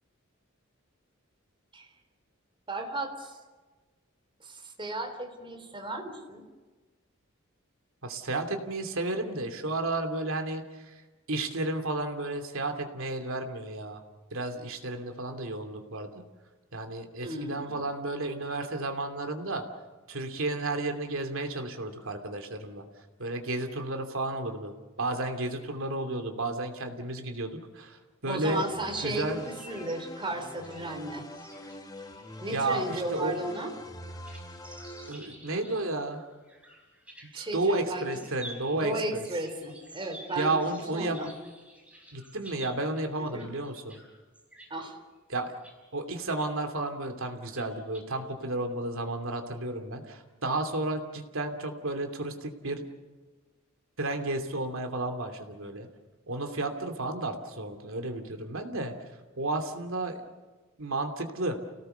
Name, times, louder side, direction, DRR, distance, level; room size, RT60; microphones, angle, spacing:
voice 1, 2.7-3.4 4.4-6.5 17.2-17.8 28.3-31.3 32.4-33.7 37.3-38.1 38.7-41.3 43.2-43.5 44.7-45.0, right 1 dB, 25° right, 4 dB, 3.7 m, -35 dB
voice 2, 8.0-11.0 11.3-14.0 14.3-16.2 16.7-19.6 20.1-22.8 23.2-28.6 29.0-29.4 32.5-33.4 35.1-36.2 37.3-39.3 40.4-41.2 42.1-44.0 45.3-45.5 45.9-52.9 54.0-55.9 56.3-58.9 59.4-60.2 60.8-61.6, right 2 dB, 70° right, 5 dB, 2.8 m, -32 dB
sound 1, 28.5-35.1, left 1 dB, 20° left, 1.6 m, -44 dB
sound 2, 28.9-44.1 44.3-44.8 45.4-45.7 46.1-46.5 46.8-46.9 47.4-48.0, right 1 dB, 5° right, 5.0 m, -51 dB
29.5 x 18.0 x 6.8 m, 1.3 s
head